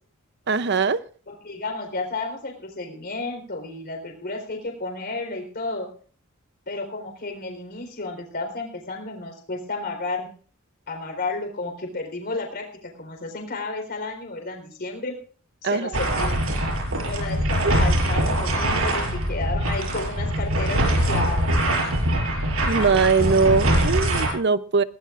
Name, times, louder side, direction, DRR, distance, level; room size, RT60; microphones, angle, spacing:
voice 1, 0.5-1.0 15.6-15.9 17.6-17.7 22.7-24.8, right 4 dB, 55° right, 14 dB, 0.7 m, -21 dB
voice 2, 1.3-5.9 6.7-10.3 10.9-12.7 13.0-15.1 15.6-16.4 17.1-21.5, left 3 dB, 50° left, 4 dB, 4.1 m, -32 dB
sound 1, 15.9-24.3, right 1 dB, 75° right, 6.3 m, -23 dB
21.0 x 18.0 x 2.5 m, 0.43 s
head